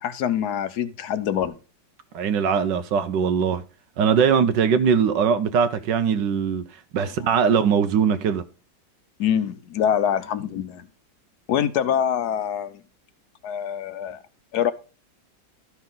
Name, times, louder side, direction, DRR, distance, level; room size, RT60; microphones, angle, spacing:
voice 1, 0.0-1.5 7.1-7.2 9.2-10.9 11.5-12.8 13.4-14.2 14.5-14.7, left 9 dB, 65° left, 1.2 m, -25 dB
voice 2, 2.1-3.6 4.0-6.6 6.9-8.4, right 7 dB, 75° right, 1.4 m, -21 dB
13.5 x 5.8 x 3.8 m
omnidirectional pair, 2.0 m